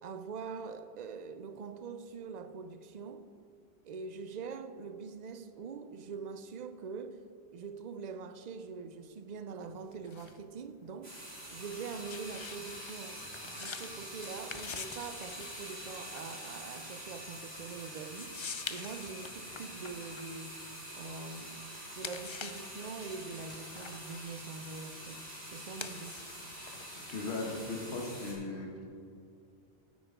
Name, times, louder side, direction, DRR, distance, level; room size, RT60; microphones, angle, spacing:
voice 1, 0.0-3.3 3.8-7.2 7.5-20.6 20.9-21.6 21.9-26.3, right 5 dB, 50° right, 0.6 m, -44 dB
sound 1, 9.6-21.4 21.7-27.8, left 5 dB, 45° left, 0.4 m, -47 dB
sound 2, 11.0-28.3, equal, 65° right, 3.6 m, -46 dB
voice 2, 27.1-28.7, left 3 dB, 70° left, 1.6 m, -37 dB
13.0 x 9.9 x 3.7 m
omnidirectional pair, 1.1 m